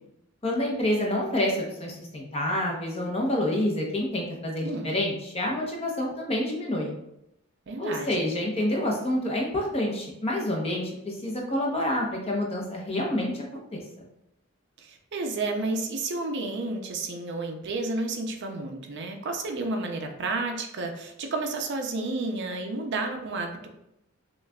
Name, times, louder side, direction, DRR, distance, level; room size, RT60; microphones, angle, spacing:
voice 1, 0.4-6.9 7.8-13.4 13.7-13.8, left 1 dB, 30° left, -1 dB, 0.7 m, -28 dB
voice 2, 7.7-8.3 14.8-23.7, right 3 dB, 55° right, 4 dB, 0.5 m, -31 dB
6.0 x 2.3 x 2.2 m, 0.82 s
head